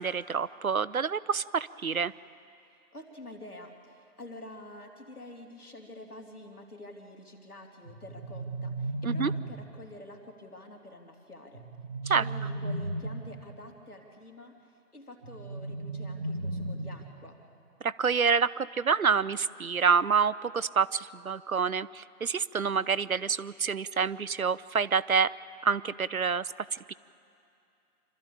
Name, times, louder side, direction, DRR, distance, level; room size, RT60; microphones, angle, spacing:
voice 1, 0.0-2.1 9.0-9.3 12.1-12.2 17.8-25.3 25.6-26.9, right 6 dB, 65° right, 18 dB, 0.5 m, -27 dB
voice 2, 2.6-11.6 12.0-14.5 14.9-17.4, left 1 dB, 70° left, 2 dB, 3.0 m, -47 dB
sound 1, 7.8-9.8 11.5-13.4 15.2-17.2, right 2 dB, 30° right, 1.3 m, -35 dB
26.5 x 13.0 x 8.5 m, 2.6 s
figure-of-eight pair, 160°, 46 cm